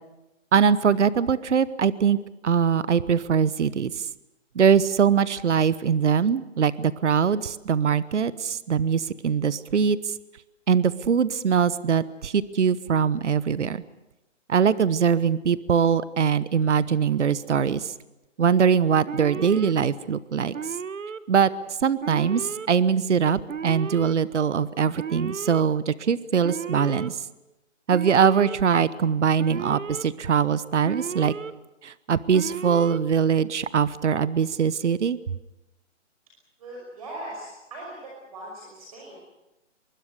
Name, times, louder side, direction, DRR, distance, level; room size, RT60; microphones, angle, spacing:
voice 1, 0.5-2.2 2.4-4.1 4.5-10.1 10.7-13.8 14.5-17.9 18.4-20.5 21.3-21.5 21.8-27.2 27.9-31.3 31.8-35.2, right 7 dB, 70° right, 17 dB, 1.1 m, -22 dB
Alarm, 19.1-19.7 20.5-21.2 22.0-22.7 23.5-24.1 24.9-25.6 26.4-27.1 27.9-28.6 29.4-30.0 30.8-31.5 32.3-33.0, right 6 dB, 90° right, 1.4 m, -34 dB
voice 2, 36.6-39.2, right 1 dB, 30° right, -2 dB, 5.8 m, -39 dB
24.5 x 23.0 x 6.7 m, 0.98 s
hypercardioid pair, 175°, 37 cm